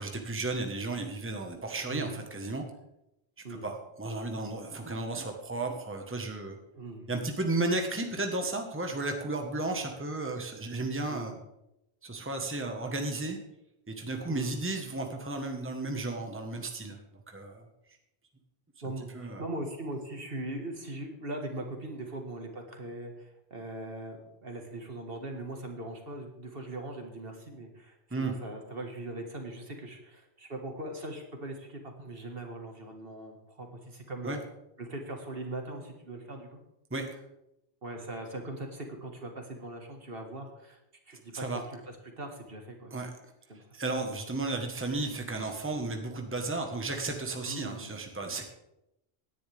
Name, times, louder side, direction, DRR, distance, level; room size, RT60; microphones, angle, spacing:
voice 1, 0.0-2.7 3.5-6.6 7.1-11.3 12.0-13.4 13.9-17.0 17.3-17.6 19.1-19.4 28.1-28.3 34.2-34.4 36.9-37.2 41.3-41.6 42.9-43.1 43.7-48.5, right 2 dB, 10° right, 3 dB, 1.3 m, -33 dB
voice 2, 1.9-2.2 3.4-3.7 6.7-7.0 11.1-11.4 14.3-14.5 18.8-34.4 34.8-36.6 37.8-40.8 41.1-41.4 41.7-43.0 43.5-43.7 44.1-44.2 47.4-47.9, right 1 dB, 60° right, 3 dB, 1.9 m, -40 dB
17.5 x 10.0 x 3.5 m, 0.87 s
omnidirectional pair, 1.1 m